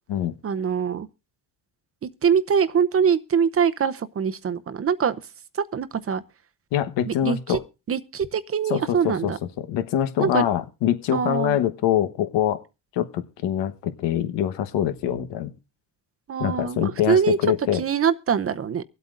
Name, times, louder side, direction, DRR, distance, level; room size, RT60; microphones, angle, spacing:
voice 1, 0.4-1.1 2.0-5.2 5.5-6.2 7.1-7.6 7.9-9.4 10.2-10.4 11.1-11.6 16.3-17.4 17.7-18.8, right 7 dB, 35° right, 0.7 m, -23 dB
voice 2, 6.7-7.6 8.7-12.6 12.9-15.5 16.4-17.8, left 11 dB, 80° left, 1.2 m, -24 dB
24.0 x 8.3 x 2.5 m
cardioid pair, 90°, 42 cm